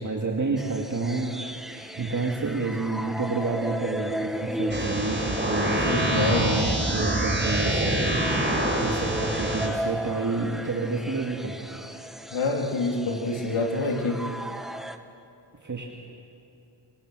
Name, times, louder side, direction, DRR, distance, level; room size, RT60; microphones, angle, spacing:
voice 1, 0.0-11.6 15.6-15.9, right 3 dB, 35° right, -1 dB, 2.2 m, -30 dB
sound 1, 0.6-15.0, equal, ahead, 1.2 m, -35 dB
sound 2, 4.7-9.7, right 1 dB, 20° right, 5.4 m, -26 dB
voice 2, 5.8-6.6 12.3-14.2, left 3 dB, 85° left, 1 dB, 3.2 m, -26 dB
26.0 x 24.5 x 6.3 m, 2.6 s
wide cardioid pair, 85°, 48 cm